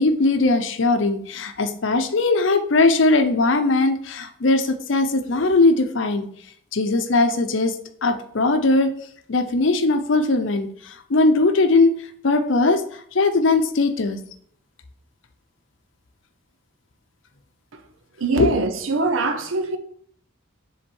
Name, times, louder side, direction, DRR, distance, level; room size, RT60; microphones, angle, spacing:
voice 1, 0.0-6.3 6.7-7.7 8.0-8.9 9.3-11.9 12.2-12.8 13.1-14.2 18.4-18.5, left 3 dB, 70° left, 0.7 m, -19 dB
voice 2, 18.2-19.8, right 3 dB, 80° right, 0.7 m, -23 dB
7.4 x 3.6 x 4.5 m
head